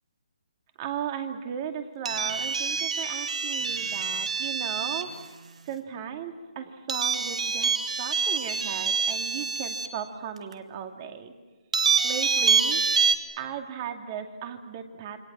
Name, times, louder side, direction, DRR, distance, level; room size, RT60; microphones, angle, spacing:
voice 1, 0.8-5.1 5.7-7.7 8.0-11.3 12.0-12.8 13.4-15.2, right 8 dB, 30° right, 5 dB, 2.3 m, -36 dB
sound 1, 2.0-5.2 6.9-9.9 10.5-10.6 11.7-13.2, right 5 dB, 65° right, 2.5 m, -26 dB
28.0 x 24.5 x 7.5 m, 1.3 s
hypercardioid pair, 155°, 4 cm